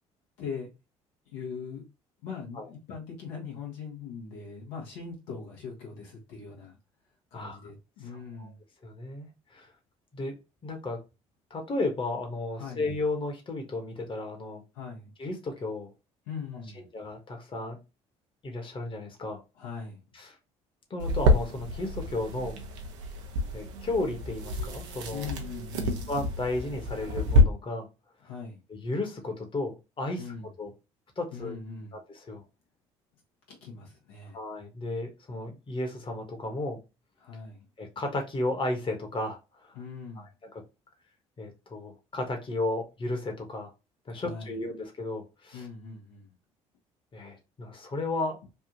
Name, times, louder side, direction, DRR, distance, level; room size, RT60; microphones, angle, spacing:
voice 1, 0.4-0.7 1.3-1.8 2.2-6.8 7.3-8.6 12.6-12.8 14.7-15.1 16.3-16.9 19.6-20.0 25.1-26.0 28.2-28.6 30.2-30.5 31.3-32.0 33.5-34.4 37.2-37.6 39.7-40.3 44.1-44.5 45.5-46.3 48.4-48.5, left 5 dB, 80° left, 1.2 m, -40 dB
voice 2, 8.8-9.7 10.1-10.3 10.6-11.0 11.5-14.6 15.2-15.9 16.9-17.8 18.4-19.4 20.1-20.4 20.9-22.6 23.5-25.3 26.1-27.9 28.7-30.3 30.6-30.7 31.2-31.6 32.1-32.4 34.3-36.8 37.8-39.8 40.2-40.3 41.4-43.7 44.1-45.7 47.1-48.4, left 2 dB, 35° left, 1.1 m, -33 dB
sound 1, 21.0-27.4, left 1 dB, 85° right, 0.6 m, -28 dB
3.4 x 2.4 x 2.8 m
hypercardioid pair, 55°, 15 cm